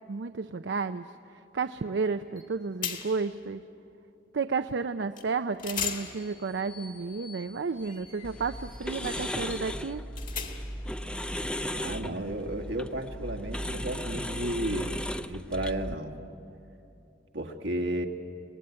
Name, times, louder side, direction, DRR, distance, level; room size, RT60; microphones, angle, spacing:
voice 1, 0.1-3.6 4.3-10.0, right 4 dB, 70° right, 10 dB, 0.5 m, -32 dB
sound 1, 2.4-2.5 2.8-3.3 5.2-5.3 5.6-10.9, left 7 dB, 50° left, 2.1 m, -39 dB
sound 2, 8.2-15.9, equal, 5° left, 0.6 m, -36 dB
voice 2, 11.7-16.1 17.3-18.1, right 1 dB, 85° right, 3 dB, 1.8 m, -33 dB
25.0 x 19.5 x 9.7 m, 2.8 s
head